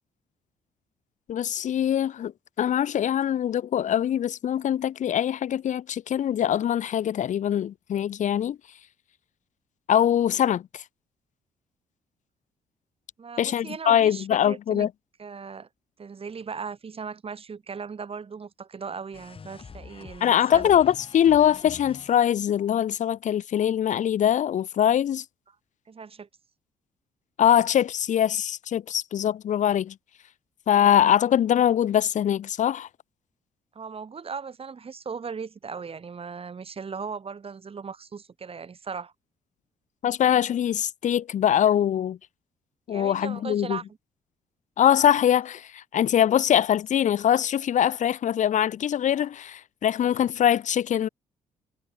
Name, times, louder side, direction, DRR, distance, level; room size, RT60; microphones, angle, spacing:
voice 1, 1.3-2.3 2.6-8.6 9.9-10.8 13.4-14.9 20.2-25.2 27.4-29.9 30.7-32.9 40.0-42.2 42.9-43.8 44.8-51.1, left 10 dB, 65° left, 1.6 m, -23 dB
voice 2, 13.2-14.9 15.2-15.7 16.0-20.7 25.9-26.3 33.8-39.1 42.9-43.8, right 5 dB, 45° right, 7.1 m, -37 dB
sound 1, 19.1-22.5, left 5 dB, 40° left, 6.3 m, -46 dB
supercardioid pair, 60°, 14 cm